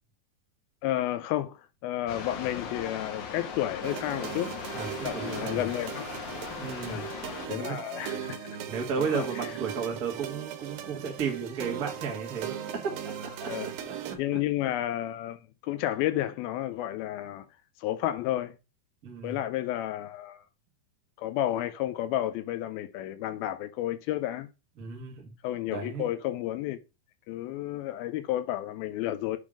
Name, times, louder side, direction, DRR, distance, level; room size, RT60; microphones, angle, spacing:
voice 1, 0.8-4.5 5.0-6.1 6.9-7.1 7.5-8.6 9.0-9.3 13.5-13.7 14.2-17.5 17.8-18.6 19.2-20.4 21.2-24.5 25.4-26.8 27.3-29.4, left 13 dB, 85° left, 2.5 m, -31 dB
sound 1, 2.1-7.5, left 6 dB, 65° left, 2.2 m, -39 dB
sound 2, 3.8-14.2, right 9 dB, 80° right, 2.7 m, -38 dB
voice 2, 4.7-5.7 6.6-7.0 7.5-7.8 8.7-14.2 19.0-19.4 24.8-25.3 25.7-26.1, right 6 dB, 35° right, 1.6 m, -34 dB
8.6 x 3.6 x 5.0 m
omnidirectional pair, 4.2 m